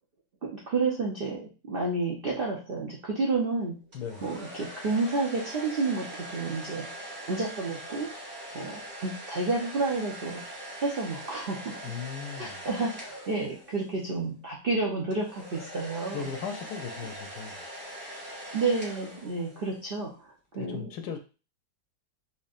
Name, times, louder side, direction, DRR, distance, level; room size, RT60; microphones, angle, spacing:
voice 1, 0.4-3.7 4.2-6.9 7.2-8.1 8.5-10.4 10.8-11.7 12.3-16.3 18.5-20.9, right 3 dB, 75° right, -2 dB, 0.5 m, -30 dB
sound 1, 3.9-14.0 15.1-19.8, right 1 dB, 30° right, 2.1 m, -42 dB
voice 2, 11.8-12.6 16.1-17.6 20.5-21.2, left 6 dB, 75° left, 6 dB, 1.0 m, -37 dB
4.3 x 3.0 x 2.4 m, 0.34 s
omnidirectional pair, 1.9 m